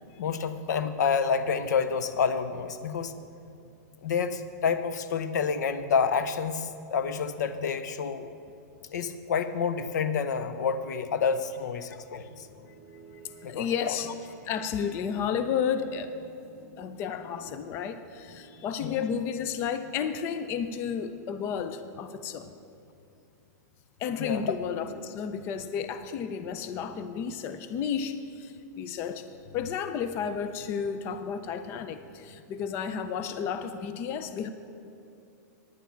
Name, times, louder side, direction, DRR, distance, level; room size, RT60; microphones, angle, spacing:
voice 1, 0.2-3.1 4.0-8.3 8.9-12.5 13.4-14.0 18.8-19.0 24.2-24.5, left 6 dB, 85° left, 11 dB, 0.7 m, -28 dB
sound 1, 11.8-22.7, right 4 dB, 20° right, 2.1 m, -55 dB
voice 2, 13.4-14.1 14.4-16.1 16.8-22.5 24.0-29.2 29.5-34.5, left 7 dB, 25° left, 10 dB, 0.4 m, -32 dB
9.7 x 9.4 x 5.7 m, 2.6 s
supercardioid pair, 165°, 9 cm